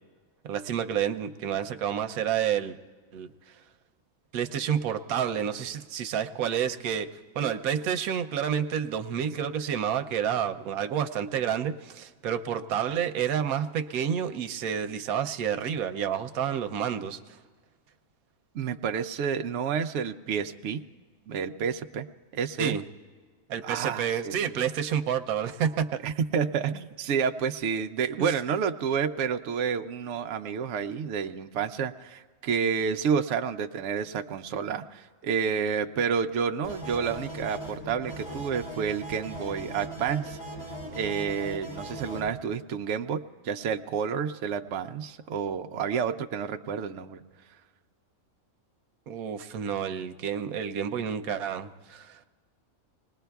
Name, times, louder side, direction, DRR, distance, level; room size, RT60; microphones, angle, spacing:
voice 1, 0.4-2.8 3.1-3.3 4.3-7.1 7.3-17.2 22.6-22.8 23.5-25.9 26.7-26.8 28.2-28.3 49.1-52.3, right 8 dB, 90° right, 7 dB, 1.1 m, -29 dB
voice 2, 18.5-20.8 21.3-22.1 22.3-22.7 23.6-24.6 26.0-40.4 40.9-43.2 43.4-47.2, right 6 dB, 65° right, 6 dB, 0.9 m, -29 dB
sound 1, 36.6-42.3, right 1 dB, 75° left, 3.6 m, -39 dB
26.0 x 19.5 x 2.3 m, 1.5 s
omnidirectional pair, 1.5 m